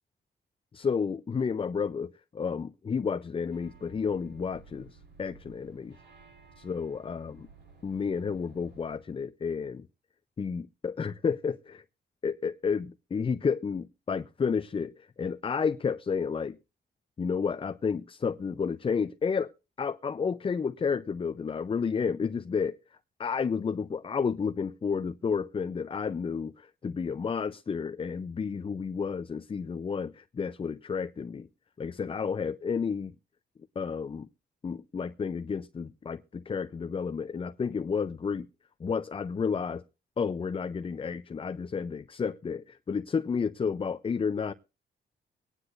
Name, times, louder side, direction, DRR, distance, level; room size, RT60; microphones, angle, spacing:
voice 1, 0.7-6.0 6.6-7.5 7.8-9.9 10.4-11.8 12.2-16.6 17.2-19.5 19.8-22.8 23.2-31.5 31.8-33.1 33.8-34.3 34.6-38.5 38.8-39.8 40.2-44.5, left 6 dB, 30° left, 0.5 m, -31 dB
sound 1, 3.5-9.0, right 4 dB, 75° right, 4.3 m, -55 dB
23.0 x 9.8 x 2.5 m
cardioid pair, 90°, 18 cm